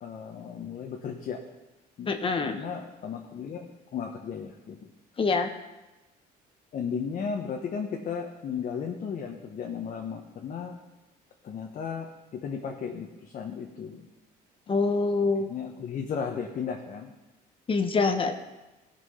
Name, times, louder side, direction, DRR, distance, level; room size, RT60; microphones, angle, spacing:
voice 1, 0.0-1.4 2.0-2.2 2.4-3.7 3.9-4.9 6.7-10.8 11.4-14.0 15.5-17.1, left 6 dB, 50° left, 2 dB, 1.3 m, -35 dB
voice 2, 2.1-2.6 5.2-5.5 14.7-15.5 17.7-18.4, left 4 dB, 30° left, 7 dB, 1.2 m, -25 dB
17.5 x 6.1 x 5.8 m, 1.1 s
cardioid pair, 110°, 17 cm